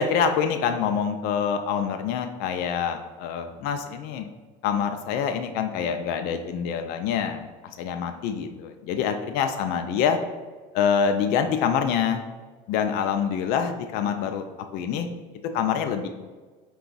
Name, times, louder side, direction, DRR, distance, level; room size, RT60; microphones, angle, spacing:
voice 1, 0.0-4.3 4.6-7.5 7.8-10.2 10.7-12.2 12.7-14.4 14.7-15.1 15.5-16.1, left 7 dB, 70° left, 6 dB, 0.4 m, -25 dB
4.7 x 2.3 x 3.9 m, 1.4 s
cardioid pair, 115°, 16 cm